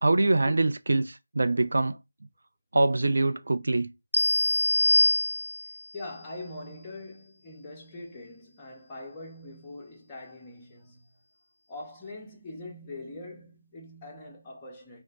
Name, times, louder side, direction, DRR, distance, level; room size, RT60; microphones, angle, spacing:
voice 1, 0.0-2.0 2.7-3.9, right 2 dB, 50° right, 0.5 m, -24 dB
sound 1, 4.1-5.9, left 1 dB, 70° left, 0.3 m, -24 dB
voice 2, 5.9-11.1 11.7-15.0, left 2 dB, 10° left, 0.8 m, -43 dB
3.0 x 2.1 x 3.9 m
figure-of-eight pair, 160°, 0 cm